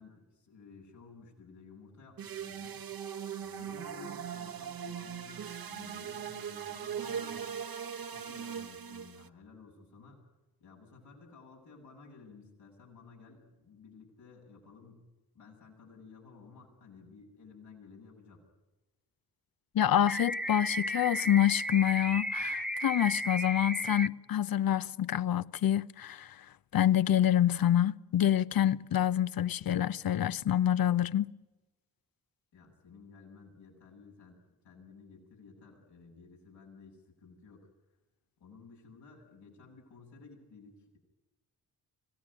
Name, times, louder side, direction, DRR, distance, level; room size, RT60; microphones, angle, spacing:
voice 1, 0.0-2.8 3.4-7.5 8.0-10.2 10.6-15.1 15.3-18.4 32.5-37.7 38.4-41.0, left 4 dB, 85° left, 8.0 m, -54 dB
sound 1, 2.2-9.3, right 8 dB, 55° right, 1.4 m, -40 dB
voice 2, 19.7-26.3 26.7-31.3, left 11 dB, 55° left, 0.9 m, -27 dB
sound 2, 20.1-24.1, equal, ahead, 1.1 m, -34 dB
25.5 x 17.5 x 9.9 m
supercardioid pair, 50°, 41 cm